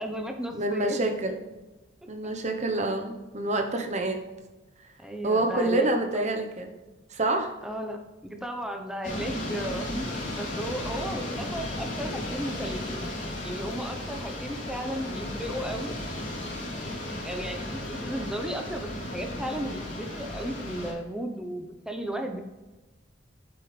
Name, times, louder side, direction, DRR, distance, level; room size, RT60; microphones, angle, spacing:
voice 1, 0.0-1.0 5.0-6.4 7.6-13.1 13.4-16.0 16.8-22.4, equal, 5° right, 4 dB, 1.0 m, -35 dB
voice 2, 0.5-1.4 2.1-4.2 5.2-6.7 7.1-7.6, right 2 dB, 40° right, 4 dB, 1.1 m, -27 dB
sound 1, 9.0-20.9, left 1 dB, 45° left, 3.1 m, -35 dB
9.1 x 7.7 x 3.5 m, 1.2 s
head